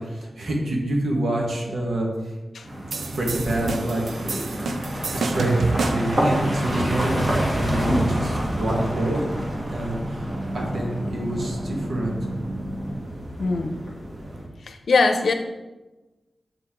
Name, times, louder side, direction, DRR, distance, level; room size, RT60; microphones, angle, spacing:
voice 1, 0.0-2.1 3.2-4.6 5.1-10.3 10.5-12.2, right 1 dB, 75° right, -1 dB, 1.6 m, -27 dB
sound 1, 2.6-14.5, equal, 50° right, 1.9 m, -28 dB
sound 2, 2.9-6.2, right 3 dB, 90° right, 0.5 m, -28 dB
sound 3, 5.1-13.0, equal, 5° right, 0.6 m, -34 dB
voice 2, 13.4-13.8 14.6-15.3, left 3 dB, 85° left, 6 dB, 0.6 m, -21 dB
7.6 x 4.7 x 3.8 m, 1.1 s
wide cardioid pair, 115°, 0 cm